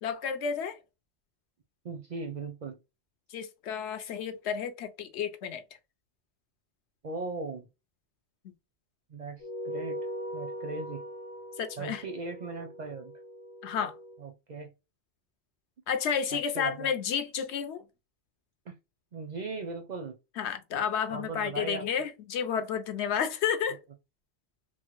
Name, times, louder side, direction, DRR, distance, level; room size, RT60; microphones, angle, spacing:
voice 1, 0.0-0.8 3.3-5.6 11.6-12.0 13.6-14.0 15.9-17.8 20.4-23.8, left 7 dB, 75° left, 0.9 m, -31 dB
voice 2, 1.8-2.8 7.0-7.6 9.1-10.0 10.3-11.0 11.8-13.1 14.2-14.7 16.3-16.9 18.7-18.8 19.1-20.2 21.1-21.8, right 3 dB, 55° right, 0.5 m, -38 dB
sound 1, 9.4-14.2, equal, 50° left, 0.4 m, -40 dB
3.0 x 2.1 x 3.0 m
omnidirectional pair, 1.2 m